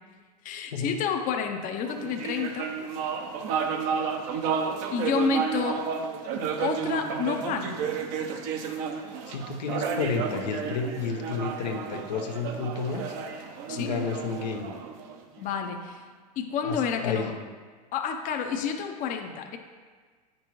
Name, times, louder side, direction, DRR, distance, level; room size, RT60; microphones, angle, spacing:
voice 1, 0.4-2.7 4.9-5.8 6.6-7.9 13.7-13.9 15.4-16.0 16.4-17.4 17.9-19.6, left 6 dB, 40° left, 4 dB, 0.7 m, -29 dB
sound 1, 1.9-15.5, right 6 dB, 55° right, 0.8 m, -32 dB
voice 2, 9.3-13.1 13.8-14.7 16.6-17.3, left 5 dB, 80° left, 3 dB, 0.8 m, -31 dB
9.1 x 5.3 x 3.0 m, 1.5 s
hypercardioid pair, 100°, 21 cm